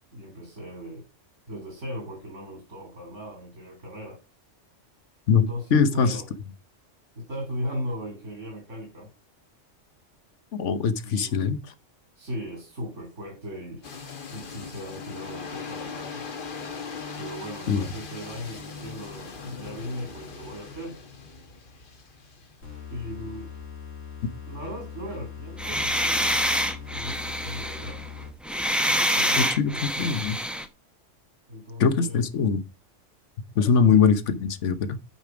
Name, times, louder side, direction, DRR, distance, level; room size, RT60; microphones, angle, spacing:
voice 1, 0.1-1.0 1.5-4.2 5.3-6.3 7.2-9.1 11.0-11.5 12.2-13.8 14.3-16.3 17.2-21.0 22.9-23.5 24.5-26.4 26.7-28.0 28.6-30.2 31.5-32.3 33.8-34.1, equal, 75° right, 3.3 m, -37 dB
voice 2, 5.3-6.2 10.5-11.6 17.7-17.9 29.4-30.4 31.8-32.6 33.6-35.0, left 6 dB, 75° left, 1.2 m, -22 dB
sound 1, 13.8-23.7, left 5 dB, 45° left, 1.2 m, -40 dB
sound 2, 22.6-28.5, left 7 dB, 90° left, 3.0 m, -41 dB
sound 3, 25.6-30.7, equal, ahead, 0.6 m, -26 dB
9.2 x 5.2 x 4.9 m
omnidirectional pair, 1.3 m